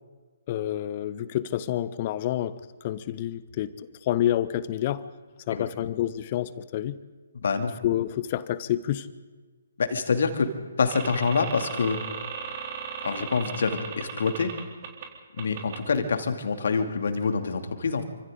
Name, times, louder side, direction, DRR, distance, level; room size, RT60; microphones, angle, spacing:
voice 1, 0.5-3.7 4.0-5.1 5.5-7.0 7.8-9.1, left 12 dB, 30° left, 16 dB, 1.0 m, -28 dB
voice 2, 5.5-5.9 7.4-7.7 9.8-10.5 10.8-12.0 13.0-14.5 15.3-18.0, left 5 dB, 50° left, 6 dB, 2.8 m, -26 dB
sound 1, 10.9-15.0 15.4-15.8, right 7 dB, 35° right, 4.1 m, -36 dB
29.0 x 25.5 x 4.0 m, 1.4 s
figure-of-eight pair, 135°, 0 cm